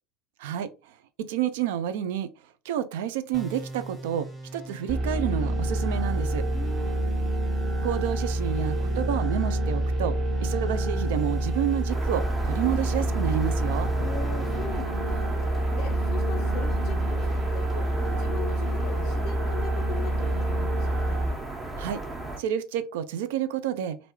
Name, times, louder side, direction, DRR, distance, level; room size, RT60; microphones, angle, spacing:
voice 1, 0.4-2.3 2.6-6.4 7.8-13.9 21.8-22.0 22.4-24.0, right 10 dB, 75° right, 0.3 m, -29 dB
sound 1, 3.3-14.7, right 2 dB, ahead, 1.2 m, -42 dB
sound 2, 4.9-21.3, right 1 dB, 55° right, 1.3 m, -27 dB
voice 2, 6.5-7.3 14.0-21.2, left 6 dB, 60° left, 0.5 m, -40 dB
sound 3, 11.9-22.4, right 2 dB, 20° right, 1.0 m, -35 dB
3.1 x 2.5 x 3.0 m
hypercardioid pair, 75°, 0 cm